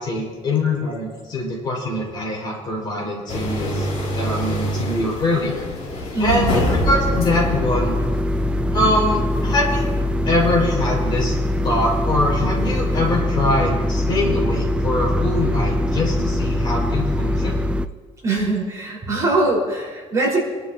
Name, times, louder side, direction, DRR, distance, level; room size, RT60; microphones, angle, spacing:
voice 1, 0.0-5.7 6.2-8.0 8.7-9.8 10.2-11.4 11.6-17.6, left 1 dB, 35° left, -3 dB, 5.3 m, -23 dB
sound 1, 3.3-13.2, equal, 55° left, 5.1 m, -27 dB
voice 2, 6.1-6.5 18.2-20.4, right 2 dB, 25° right, -5 dB, 4.8 m, -22 dB
sound 2, 6.8-17.9, left 1 dB, 10° right, 0.4 m, -22 dB
28.0 x 12.0 x 2.9 m, 1.4 s
cardioid pair, 175°, 13 cm